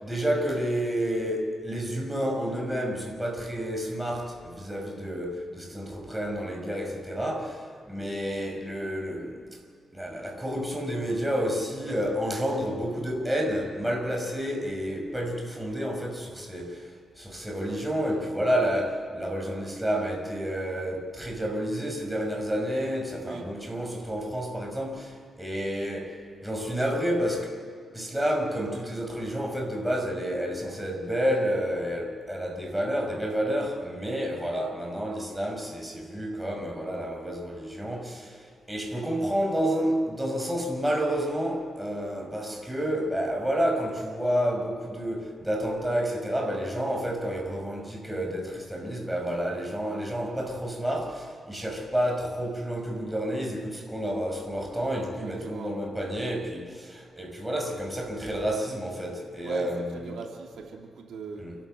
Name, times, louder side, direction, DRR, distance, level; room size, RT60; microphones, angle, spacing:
voice 1, 0.0-9.4 9.9-16.9 17.2-27.5 27.9-60.2 61.4-61.6, equal, 10° right, 2 dB, 5.7 m, -30 dB
voice 2, 55.2-55.7 59.4-61.5, right 4 dB, 85° right, 1 dB, 2.7 m, -40 dB
29.0 x 12.5 x 7.9 m, 2.2 s
cardioid pair, 80°, 0 cm